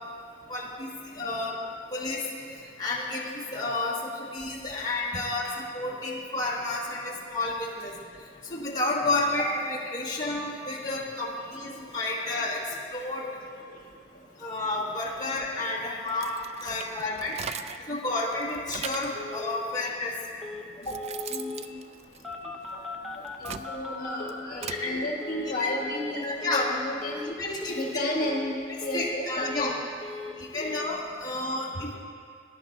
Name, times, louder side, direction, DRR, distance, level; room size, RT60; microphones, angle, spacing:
voice 1, 0.5-1.5 1.9-2.2 2.8-7.9 8.5-12.6 12.9-13.2 14.4-17.4 17.9-20.2 20.8-21.0 24.8-25.0 25.6-25.7 26.1-26.7 27.2-28.0 28.9-29.7 30.4-32.0, left 2 dB, 20° left, -6 dB, 1.6 m, -31 dB
Telephone, 15.5-15.6 15.9-16.0 16.2-16.3 16.6-17.0 17.3-17.4 17.6-18.0 18.4-18.5 19.0-19.6 20.4-20.6 20.9-21.6 22.2-24.9 25.2-25.5 25.8-26.1 26.4-26.7 27.0-27.3 27.6-27.9 28.2-28.5 28.8-29.7 30.0-30.4 30.6-30.9, left 3 dB, ahead, 0.7 m, -39 dB
sound 1, 16.1-17.9 18.3-19.2 20.0-20.1 20.6-22.7 23.2-24.9, right 7 dB, 35° right, 0.3 m, -39 dB
voice 2, 21.3-21.8 22.7-22.8 23.4-27.2 27.7-29.9 30.5-30.8, left 1 dB, 55° left, -2 dB, 1.5 m, -33 dB
18.5 x 10.5 x 2.6 m, 2.2 s
head